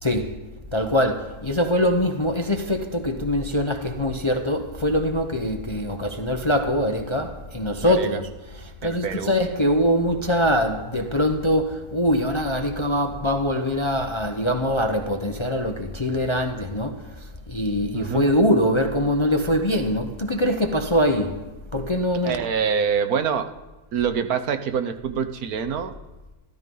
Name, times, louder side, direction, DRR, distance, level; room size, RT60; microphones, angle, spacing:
voice 1, 0.0-8.3 8.6-22.4, equal, 25° left, 0.7 m, -23 dB
voice 2, 7.8-8.2 8.8-9.3 17.9-18.2 22.2-23.5 23.9-25.9, right 7 dB, 70° right, 1.4 m, -25 dB
14.0 x 13.0 x 5.4 m
omnidirectional pair, 1.6 m